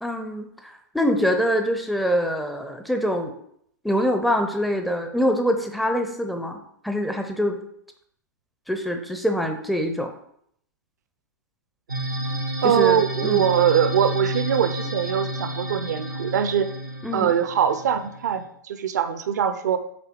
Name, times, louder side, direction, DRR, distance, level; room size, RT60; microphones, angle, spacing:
voice 1, 0.0-3.3 3.8-7.6 8.7-10.1 12.6-13.5 17.0-17.3, equal, ahead, 5 dB, 0.6 m, -24 dB
sound 1, 11.9-18.5, right 1 dB, 90° right, 1.5 m, -31 dB
voice 2, 12.6-16.7 17.1-19.8, right 9 dB, 60° right, 11 dB, 0.6 m, -22 dB
8.4 x 3.3 x 4.5 m, 0.69 s
figure-of-eight pair, 100°, 11 cm